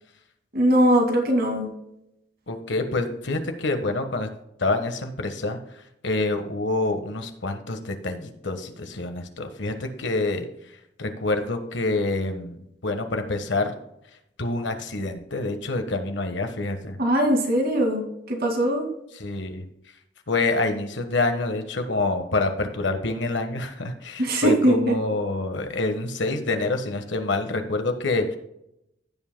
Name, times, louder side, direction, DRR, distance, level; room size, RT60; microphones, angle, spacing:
voice 1, 0.5-1.7 17.0-18.9 24.2-25.0, right 1 dB, 55° right, 2 dB, 2.2 m, -21 dB
voice 2, 2.5-4.3 4.6-5.6 6.0-10.5 11.0-13.7 14.4-17.0 19.1-19.6 20.3-28.4, left 2 dB, 70° left, 6 dB, 1.4 m, -27 dB
16.0 x 7.6 x 2.2 m, 0.82 s
head